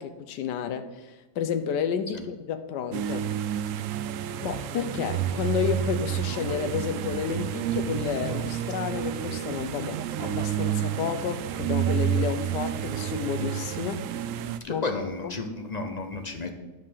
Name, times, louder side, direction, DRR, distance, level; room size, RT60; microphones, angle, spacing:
voice 1, 0.0-3.3 4.4-14.1 14.7-14.9 15.2-15.3, left 8 dB, 85° left, 11 dB, 1.3 m, -31 dB
sound 1, 2.9-14.6, right 10 dB, 70° right, 0.7 m, -30 dB
voice 2, 14.6-16.5, left 3 dB, 40° left, 5 dB, 0.6 m, -32 dB
9.7 x 4.4 x 7.4 m, 1.1 s
omnidirectional pair, 1.8 m